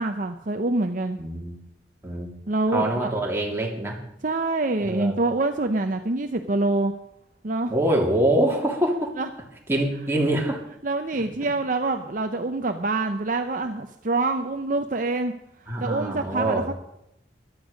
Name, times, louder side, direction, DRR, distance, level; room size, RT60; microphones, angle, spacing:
voice 1, 0.0-1.2 2.5-3.1 4.2-6.9 7.4-7.7 9.2-9.3 10.8-15.3 15.8-16.7, right 2 dB, 45° right, 6 dB, 0.7 m, -25 dB
voice 2, 1.2-1.6 2.0-2.3 2.7-4.0 4.9-5.2 7.7-9.1 9.7-10.6 15.7-16.6, right 1 dB, 15° right, -1 dB, 2.7 m, -24 dB
14.5 x 11.5 x 5.2 m, 0.81 s
head